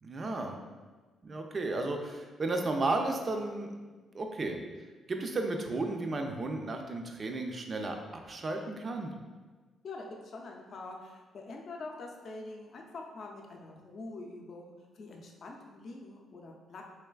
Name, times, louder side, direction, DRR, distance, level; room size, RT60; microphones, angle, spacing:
voice 1, 0.0-0.6 1.2-3.7 4.1-4.6 5.1-9.1, right 2 dB, 40° right, 3 dB, 0.4 m, -33 dB
voice 2, 9.8-16.8, left 3 dB, 55° left, 1 dB, 0.5 m, -45 dB
3.3 x 3.1 x 2.3 m, 1.4 s
cardioid pair, 90°, 0 cm